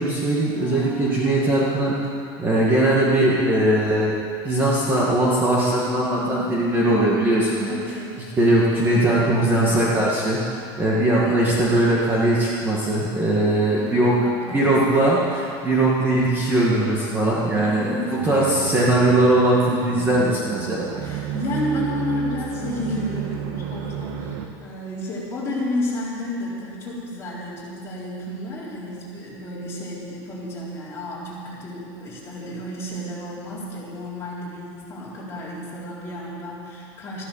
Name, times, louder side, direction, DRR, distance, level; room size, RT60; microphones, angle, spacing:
voice 1, 0.0-1.9 2.4-4.1 4.4-8.0 8.4-10.4 10.8-14.1 14.5-20.8, right 1 dB, 15° right, -6 dB, 2.0 m, -20 dB
voice 2, 0.5-1.2 2.5-3.0 5.9-7.1 7.5-8.2 8.4-10.0 11.2-11.7 13.7-15.2 17.6-18.6 21.0-37.2, left 1 dB, 20° left, -7 dB, 4.2 m, -32 dB
sound 1, 16.0-24.5, right 8 dB, 75° right, 1.6 m, -32 dB
14.5 x 13.0 x 7.2 m, 2.3 s
cardioid pair, 170°, 13 cm